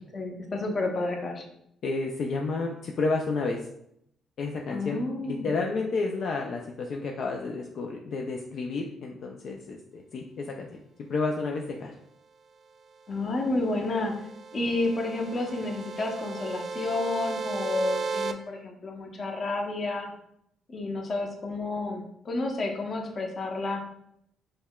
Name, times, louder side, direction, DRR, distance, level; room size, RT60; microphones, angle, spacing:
voice 1, 0.1-1.4 4.7-5.5 13.1-20.1 20.7-23.8, left 2 dB, 45° left, 2 dB, 0.7 m, -30 dB
voice 2, 1.8-3.6 4.4-5.0 5.3-10.8 11.1-11.9, left 3 dB, 65° left, 1 dB, 0.4 m, -31 dB
sound 1, 13.4-18.3, right 4 dB, 55° right, 0.3 m, -35 dB
5.3 x 2.1 x 2.3 m, 0.75 s
cardioid pair, 90°, 0 cm